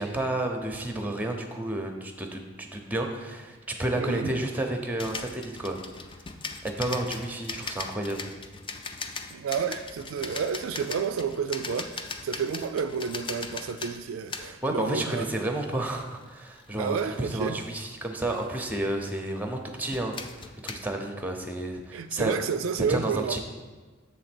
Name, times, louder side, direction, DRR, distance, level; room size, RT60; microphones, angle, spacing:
voice 1, 0.0-5.8 6.6-8.3 14.6-22.4 22.9-23.4, right 1 dB, 10° right, 4 dB, 0.7 m, -31 dB
voice 2, 4.0-4.3 9.3-15.2 16.8-17.6 21.9-23.4, right 6 dB, 70° right, 10 dB, 0.3 m, -30 dB
sound 1, 5.0-14.8 15.1-15.3 15.9-17.4 18.2-18.5 19.0-19.4 19.9-20.8, left 4 dB, 25° left, 0.4 m, -39 dB
7.3 x 3.9 x 6.0 m, 1.4 s
head